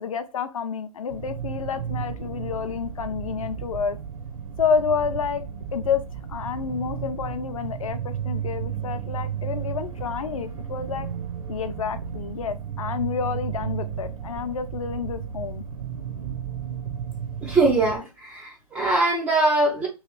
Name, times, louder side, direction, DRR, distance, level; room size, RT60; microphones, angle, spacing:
voice 1, 0.0-4.0 4.6-5.4 5.7-6.0 6.3-11.1 11.5-15.6, left 6 dB, 60° left, 9 dB, 0.7 m, -29 dB
sound 1, 1.1-18.0, right 8 dB, 60° right, 0.8 m, -33 dB
voice 2, 17.4-19.9, right 2 dB, 5° right, -3 dB, 0.3 m, -22 dB
3.1 x 2.9 x 3.1 m, 0.28 s
hypercardioid pair, 140°, 20 cm